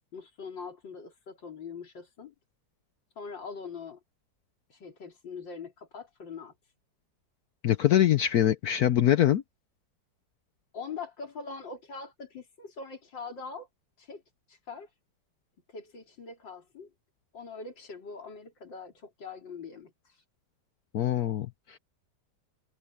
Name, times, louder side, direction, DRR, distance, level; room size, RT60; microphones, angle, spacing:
voice 1, 0.1-2.3 3.2-4.0 4.7-6.7 10.7-13.7 14.0-14.2 14.5-14.9 15.7-16.9 17.3-20.2, left 5 dB, 85° left, 4.1 m, -42 dB
voice 2, 7.6-9.4 20.9-21.8, left 11 dB, 65° left, 1.1 m, -24 dB
omnidirectional pair, 1.9 m